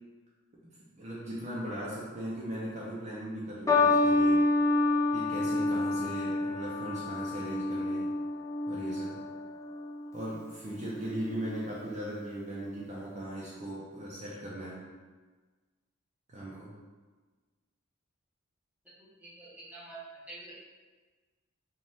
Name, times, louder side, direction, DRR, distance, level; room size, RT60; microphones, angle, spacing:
voice 1, 0.9-4.4 5.1-8.1 8.7-9.1 10.1-14.8 16.3-16.7, right 1 dB, 30° right, -6 dB, 0.6 m, -38 dB
sound 1, 3.7-10.2 11.0-11.4, left 2 dB, 15° left, 0.4 m, -28 dB
voice 2, 19.0-20.7, right 2 dB, 5° right, -7 dB, 1.0 m, -47 dB
5.1 x 2.4 x 3.4 m, 1.3 s
head